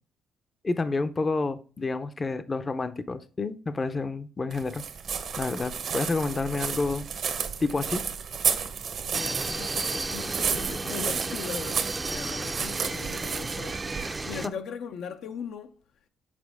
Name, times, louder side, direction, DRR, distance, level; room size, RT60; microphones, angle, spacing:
voice 1, 0.6-4.8 5.4-7.1 7.6-8.0, left 3 dB, 30° left, 0.5 m, -29 dB
sound 1, 4.5-14.4, right 7 dB, 60° right, 0.8 m, -32 dB
voice 2, 9.1-15.8, left 7 dB, 75° left, 0.5 m, -39 dB
sound 2, 9.1-14.5, right 2 dB, 20° right, 0.4 m, -34 dB
7.4 x 4.4 x 3.4 m
cardioid pair, 90°, 0 cm